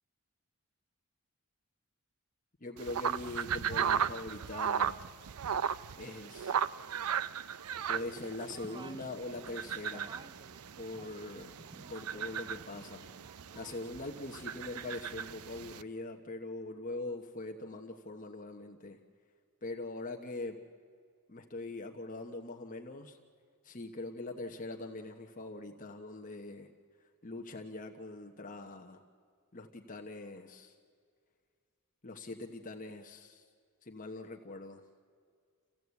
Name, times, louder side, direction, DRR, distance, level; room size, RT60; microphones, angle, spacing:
voice 1, 2.6-5.0 6.0-6.5 7.9-10.1 10.8-11.5 11.9-13.1 13.5-19.0 19.6-20.6 21.3-23.2 23.6-26.7 27.2-29.0 29.5-30.7 32.0-33.4 33.8-34.8, left 2 dB, 35° left, 3 dB, 1.1 m, -42 dB
sound 1, 2.8-15.8, right 8 dB, 85° right, 0.5 m, -37 dB
sound 2, 8.5-13.8, right 3 dB, 20° right, 0.5 m, -54 dB
27.5 x 16.0 x 8.3 m, 2.1 s
head